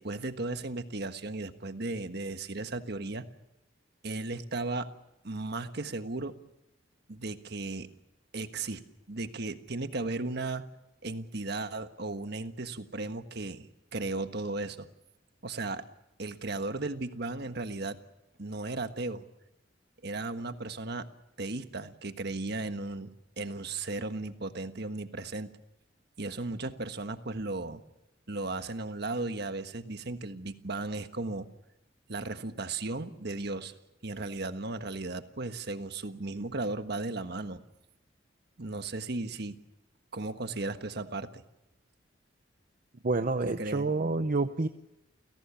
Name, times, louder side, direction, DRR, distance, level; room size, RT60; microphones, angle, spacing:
voice 1, 0.0-3.2 4.0-4.9 5.2-6.4 7.1-7.9 8.3-8.8 9.1-10.7 11.0-14.9 15.4-15.8 16.2-18.0 18.4-19.3 20.0-21.1 21.4-23.1 23.4-25.5 26.2-27.8 28.3-31.5 32.1-33.7 34.0-37.6 38.6-39.6 40.1-41.4 43.6-43.9, right 2 dB, 60° right, 8 dB, 1.4 m, -35 dB
voice 2, 43.0-44.7, right 3 dB, 45° right, 8 dB, 0.8 m, -28 dB
29.5 x 17.0 x 7.1 m, 0.93 s
head